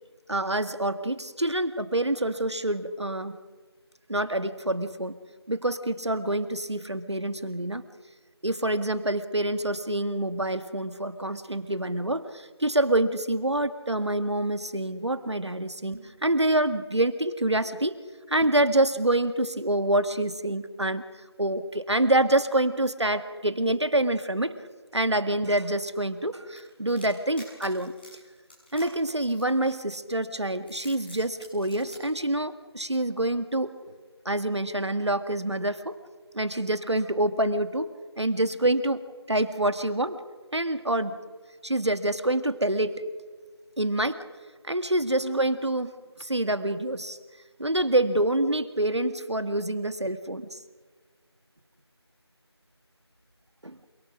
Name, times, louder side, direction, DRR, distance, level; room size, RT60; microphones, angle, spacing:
voice 1, 0.3-3.4 4.1-5.2 5.5-7.8 8.4-18.0 18.3-21.0 21.4-24.5 24.9-27.9 28.7-33.7 34.3-36.0 36.3-37.9 38.2-39.0 39.3-40.2 40.5-41.1 41.6-43.0 43.8-44.2 44.6-45.9 46.2-47.2 47.6-50.6 53.6-53.8, right 1 dB, 75° right, 10 dB, 1.9 m, -26 dB
sound 1, 15.9-16.3 18.4-18.7, right 1 dB, 30° right, 1.0 m, -45 dB
sound 2, 26.6-30.0 30.5-32.0, left 1 dB, 20° left, 7.4 m, -49 dB
28.0 x 22.0 x 6.3 m, 1.5 s
figure-of-eight pair, 175°, 14 cm